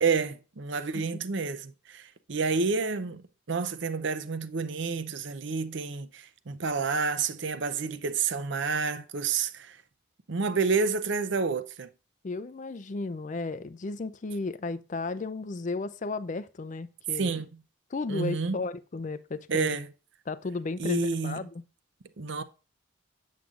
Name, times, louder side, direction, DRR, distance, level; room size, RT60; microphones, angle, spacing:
voice 1, 0.0-3.2 3.5-9.8 10.3-11.9 17.2-17.4 18.1-18.6 19.5-19.9 20.8-21.5 22.2-22.4, right 4 dB, 55° right, 0.6 m, -29 dB
voice 2, 12.2-17.4 17.9-19.8 20.3-21.6, left 3 dB, 35° left, 0.4 m, -34 dB
8.2 x 7.6 x 2.5 m
head